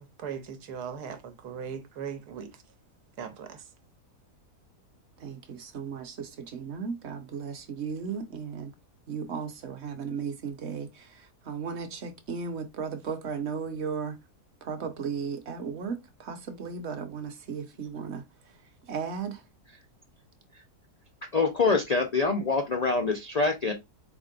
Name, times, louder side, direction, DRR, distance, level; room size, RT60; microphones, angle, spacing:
voice 1, 0.0-2.6 3.2-3.6, right 7 dB, 80° right, 1.4 m, -39 dB
voice 2, 5.2-8.7 9.1-14.2 14.6-18.2 18.9-19.4, right 6 dB, 50° right, 1.0 m, -35 dB
voice 3, 21.3-23.7, left 4 dB, 65° left, 0.4 m, -25 dB
4.3 x 3.7 x 2.4 m
omnidirectional pair, 1.7 m